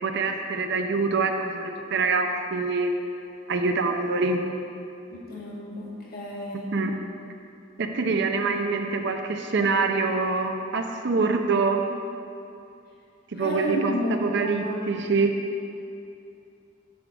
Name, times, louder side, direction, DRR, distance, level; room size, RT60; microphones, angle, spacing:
voice 1, 0.0-2.9 3.5-4.4 6.7-7.0 7.8-11.8 13.3-15.3, right 4 dB, 60° right, 5 dB, 0.6 m, -25 dB
voice 2, 5.1-6.7 13.4-14.8, equal, 50° left, -3 dB, 1.6 m, -31 dB
9.8 x 3.5 x 7.1 m, 2.6 s
head